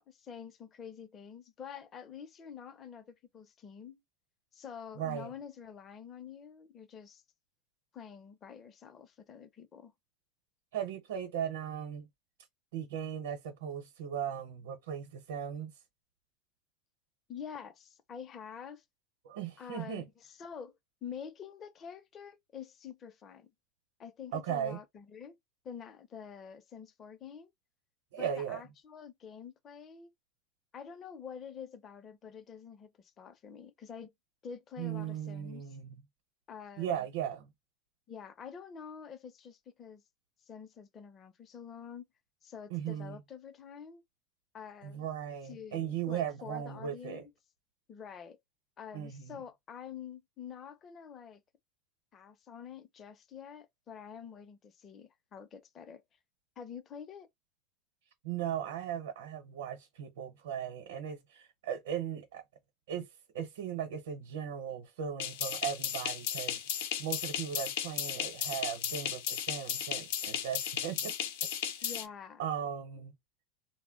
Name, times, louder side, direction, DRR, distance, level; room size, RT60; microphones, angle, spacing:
voice 1, 0.0-4.0 4.5-7.2 7.9-9.9 17.3-18.8 19.6-20.0 20.3-20.8 21.0-23.5 24.0-25.4 25.6-27.5 28.2-30.1 30.7-34.1 34.4-35.6 36.5-37.1 38.1-40.0 40.5-42.1 42.4-44.0 44.5-45.1 45.5-47.3 47.9-48.4 48.8-51.4 52.1-56.0 56.6-57.3 71.8-72.4, left 7 dB, 25° left, 0.5 m, -47 dB
voice 2, 4.9-5.3 10.7-12.1 12.7-15.8 19.2-20.1 24.3-24.8 28.1-28.6 34.8-36.0 36.8-37.5 42.7-43.2 44.8-47.2 48.9-49.4 58.2-62.4 62.9-66.6 67.0-71.1 72.4-73.1, right 9 dB, 85° right, 0.8 m, -37 dB
sound 1, 65.2-72.0, left 9 dB, 75° left, 0.6 m, -35 dB
2.2 x 2.0 x 3.6 m
supercardioid pair, 145°, 0 cm